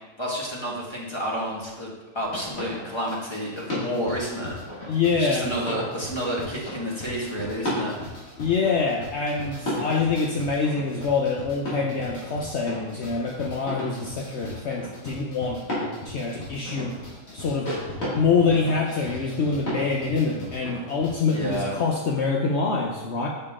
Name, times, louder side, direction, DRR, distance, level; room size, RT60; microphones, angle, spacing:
voice 1, 0.2-4.5 5.2-8.1 21.3-21.8, equal, 20° left, -4 dB, 1.6 m, -30 dB
sound 1, 2.2-21.6, left 1 dB, 75° left, 3.0 m, -34 dB
voice 2, 4.9-5.5 8.4-15.6 16.0-17.0 17.3-17.7 18.1-23.3, left 4 dB, 60° left, 0 dB, 0.9 m, -25 dB
6.8 x 6.8 x 3.6 m, 1.2 s
omnidirectional pair, 1.4 m